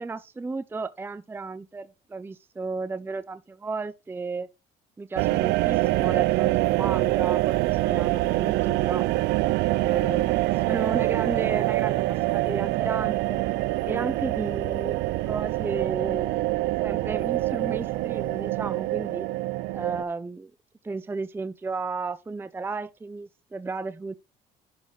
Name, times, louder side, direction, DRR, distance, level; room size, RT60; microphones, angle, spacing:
voice 1, 0.0-4.5 5.0-9.1 9.8-10.3 10.6-13.4 13.9-15.0 15.3-16.4 16.8-19.3 19.7-20.5 20.8-24.1, right 4 dB, 15° right, 0.5 m, -33 dB
sound 1, 5.1-20.0, right 19 dB, 85° right, 0.4 m, -25 dB
11.0 x 4.1 x 4.7 m
cardioid pair, 110°, 17 cm